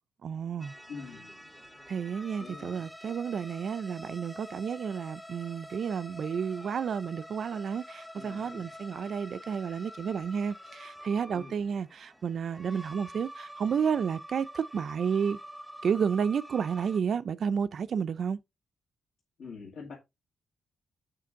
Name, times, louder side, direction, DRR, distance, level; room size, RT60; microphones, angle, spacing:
voice 1, 0.2-0.7 1.9-15.4 15.8-18.4, right 7 dB, 50° right, 0.4 m, -31 dB
sound 1, 0.6-17.0, equal, ahead, 0.6 m, -47 dB
voice 2, 0.9-1.4 2.4-2.9 8.2-8.7 11.3-11.6 19.4-19.9, left 5 dB, 65° left, 2.1 m, -45 dB
8.4 x 5.1 x 3.6 m
wide cardioid pair, 165°, 0 cm